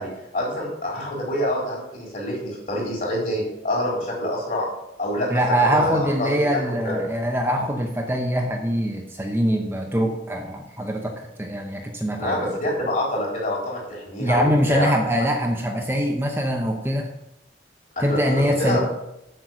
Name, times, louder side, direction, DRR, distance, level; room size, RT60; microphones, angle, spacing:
voice 1, 0.0-4.7 5.0-7.0 12.1-14.9 18.0-18.8, left 1 dB, 45° left, -3 dB, 4.0 m, -26 dB
voice 2, 5.3-12.5 14.2-17.1 18.0-18.8, equal, 15° right, 2 dB, 0.8 m, -23 dB
7.7 x 6.8 x 6.2 m, 0.86 s
head